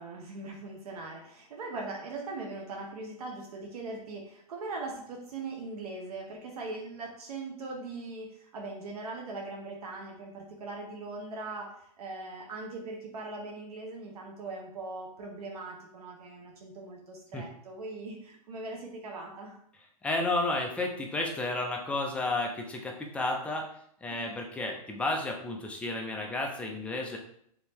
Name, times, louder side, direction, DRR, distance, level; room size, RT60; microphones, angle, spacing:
voice 1, 0.0-19.6 24.1-24.4, right 3 dB, 75° right, 0 dB, 0.8 m, -40 dB
voice 2, 20.0-23.7 24.0-27.2, left 2 dB, 5° left, 1 dB, 0.4 m, -32 dB
3.5 x 2.7 x 3.0 m, 0.68 s
hypercardioid pair, 135°, 20 cm